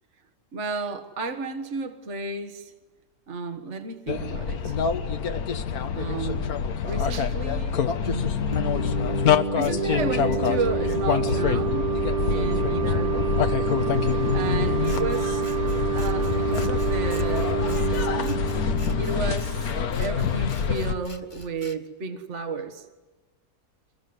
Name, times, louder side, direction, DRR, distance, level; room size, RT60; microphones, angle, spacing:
voice 1, 0.5-2.7 3.3-4.8 5.9-6.4 6.8-9.0 9.4-11.9 12.3-13.4 14.3-15.4 15.9-18.4 19.0-19.7 20.0-22.9, right 4 dB, 45° right, 8 dB, 1.8 m, -33 dB
sound 1, 4.1-20.9, left 7 dB, 65° left, 1.6 m, -26 dB
sound 2, 8.5-19.9, right 6 dB, 25° right, 1.1 m, -28 dB
Scissors, 14.8-21.8, left 2 dB, 20° left, 2.0 m, -47 dB
26.0 x 22.5 x 9.6 m, 1.3 s
omnidirectional pair, 1.7 m